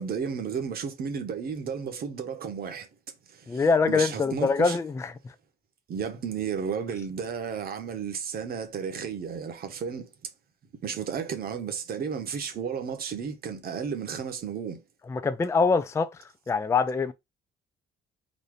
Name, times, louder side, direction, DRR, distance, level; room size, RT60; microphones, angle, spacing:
voice 1, 0.0-2.9 3.3-4.8 5.9-10.1 10.8-14.8, right 6 dB, 50° right, 1.2 m, -33 dB
voice 2, 3.5-5.1 15.1-16.1 16.5-17.1, left 4 dB, 15° left, 0.4 m, -24 dB
4.1 x 2.7 x 4.8 m
cardioid pair, 150°, 20 cm